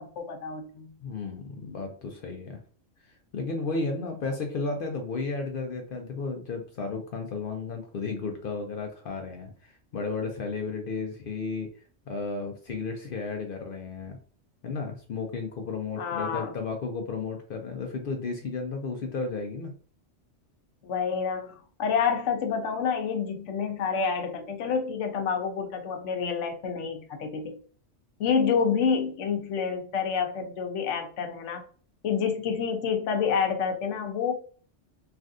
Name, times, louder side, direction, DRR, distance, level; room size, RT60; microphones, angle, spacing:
voice 1, 0.0-0.9 16.0-16.5 20.8-27.6 28.2-31.6 32.0-34.4, left 6 dB, 90° left, 5 dB, 1.0 m, -28 dB
voice 2, 1.0-2.6 3.0-11.7 12.1-14.2 14.6-19.7, left 4 dB, 60° left, 3 dB, 0.6 m, -33 dB
3.3 x 2.5 x 2.5 m, 0.43 s
omnidirectional pair, 1.2 m